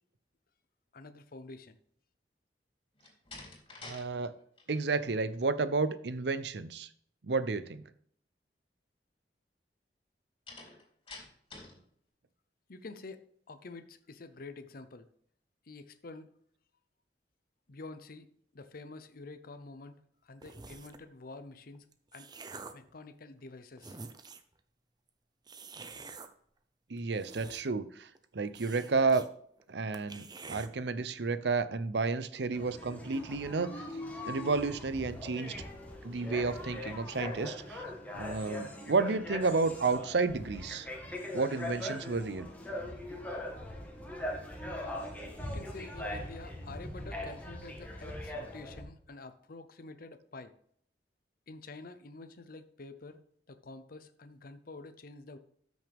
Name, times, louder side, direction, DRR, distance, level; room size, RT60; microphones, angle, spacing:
voice 1, 0.9-1.8 12.7-15.1 15.7-16.3 17.7-20.0 20.2-21.9 22.1-22.3 22.7-24.0 45.4-50.5 51.5-53.2 53.5-55.4, left 3 dB, 55° left, 10 dB, 0.8 m, -48 dB
Slam, 3.0-4.1 4.4-4.8 10.5-11.8, left 3 dB, 30° left, 3.4 m, -48 dB
voice 2, 3.8-4.3 4.7-6.9 7.2-7.8 26.9-28.1 28.3-29.2 29.7-33.8 34.2-35.5 36.0-37.8 38.1-40.9 41.3-42.5, right 4 dB, 70° right, 13 dB, 0.7 m, -31 dB
sound 1, 20.4-21.1 21.7-22.9 23.5-23.6 23.8-24.5 25.5-26.3 27.0-27.9 28.1-28.2 28.5-29.3 29.6-29.7 29.9-30.7, right 4 dB, 25° right, 0.7 m, -47 dB
sound 2, 32.5-48.8, left 1 dB, 10° left, 2.0 m, -41 dB
13.5 x 6.3 x 3.5 m, 0.64 s
head